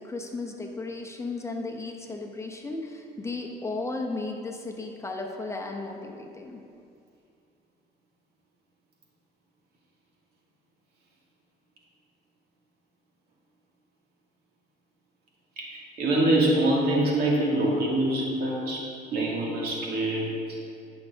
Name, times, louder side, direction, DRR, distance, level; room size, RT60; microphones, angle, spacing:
voice 1, 0.0-6.6, left 3 dB, 15° left, 1 dB, 0.9 m, -35 dB
voice 2, 15.6-20.3, right 1 dB, 70° right, -3 dB, 2.2 m, -25 dB
13.5 x 6.4 x 3.7 m, 2.4 s
cardioid pair, 110°, 17 cm